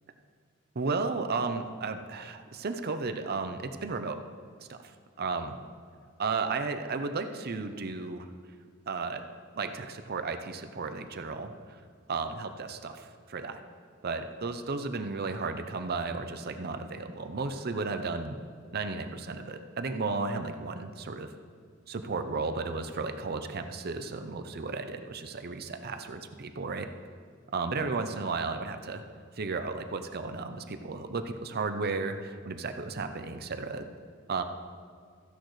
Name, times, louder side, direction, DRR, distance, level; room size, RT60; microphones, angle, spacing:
voice 1, 0.7-4.2 4.6-4.8 5.2-5.5 6.2-8.3 8.9-9.2 9.5-11.8 12.1-13.6 14.0-18.4 18.7-21.3 21.9-26.9 27.5-29.0 29.3-33.9 34.3-34.4, right 4 dB, 50° right, 8 dB, 0.6 m, -34 dB
15.0 x 10.5 x 3.2 m, 2.1 s
head